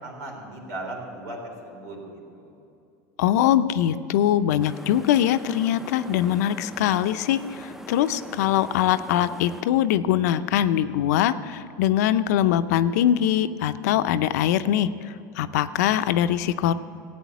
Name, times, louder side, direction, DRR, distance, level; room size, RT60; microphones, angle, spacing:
voice 1, 0.0-1.4 1.6-2.5, right 2 dB, 90° right, 0 dB, 3.7 m, -37 dB
voice 2, 3.2-16.7, left 11 dB, 80° left, 12 dB, 0.6 m, -22 dB
sound 1, 4.6-9.6, equal, 5° right, 0.5 m, -42 dB
15.5 x 8.3 x 8.3 m, 2.6 s
supercardioid pair, 120°, 9 cm